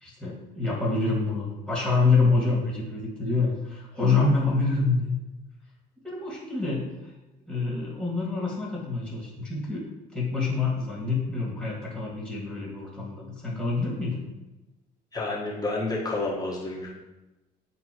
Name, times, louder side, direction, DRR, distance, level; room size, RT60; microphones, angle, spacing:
voice 1, 0.0-5.1 6.0-7.1 7.5-9.8 10.1-14.2, left 3 dB, ahead, -5 dB, 2.2 m, -26 dB
voice 2, 15.1-16.9, left 2 dB, 20° left, -4 dB, 1.4 m, -29 dB
9.2 x 4.0 x 3.0 m, 1.0 s
cardioid pair, 110°, 17 cm